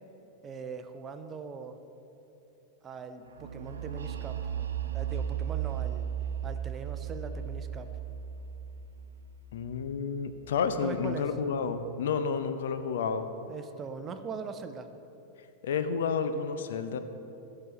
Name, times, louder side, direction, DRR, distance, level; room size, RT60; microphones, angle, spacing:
voice 1, 0.4-1.8 2.8-4.4 4.9-6.1 6.4-7.9 10.8-11.3 13.5-14.9, right 5 dB, 25° right, 9 dB, 0.6 m, -41 dB
sound 1, 3.4-11.1, right 9 dB, 70° right, 0.6 m, -36 dB
voice 2, 9.5-13.3 15.6-17.0, left 6 dB, 60° left, 10 dB, 0.5 m, -30 dB
16.5 x 7.5 x 3.1 m, 3.0 s
figure-of-eight pair, 90°, 0 cm